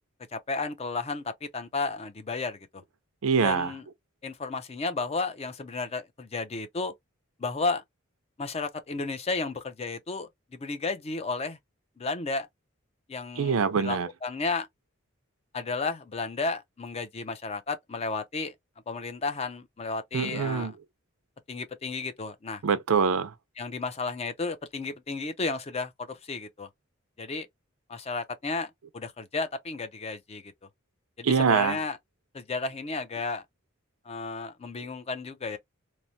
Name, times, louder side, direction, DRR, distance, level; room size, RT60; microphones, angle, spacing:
voice 1, 0.3-2.8 3.4-3.8 4.2-6.9 7.4-7.8 8.4-11.6 12.0-12.5 13.1-14.7 15.5-18.5 18.9-20.7 21.5-22.6 23.6-26.7 27.2-27.5 27.9-30.5 31.2-32.0 32.3-33.4 34.1-35.6, left 3 dB, 30° left, 0.5 m, -33 dB
voice 2, 3.2-3.7 13.4-14.1 20.1-20.7 22.6-23.3 31.2-31.8, right 5 dB, 80° right, 0.5 m, -24 dB
3.1 x 2.1 x 2.6 m
head